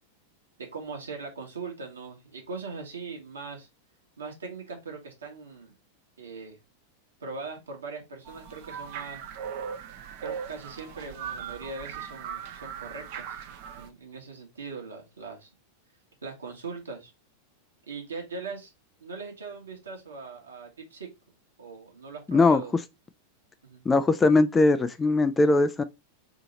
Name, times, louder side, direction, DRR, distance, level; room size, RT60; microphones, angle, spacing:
voice 1, 0.6-3.7 4.2-5.7 6.2-6.6 7.2-9.2 10.2-13.4 13.8-15.5 16.2-17.1 17.9-18.7 19.0-21.1 21.6-22.7 23.6-23.8, right 4 dB, 70° right, 1.1 m, -40 dB
sound 1, 8.2-13.9, right 7 dB, 45° right, 0.5 m, -39 dB
voice 2, 22.3-22.6 23.9-25.8, left 3 dB, 15° left, 0.4 m, -20 dB
2.9 x 2.8 x 4.0 m
figure-of-eight pair, 90°, 0 cm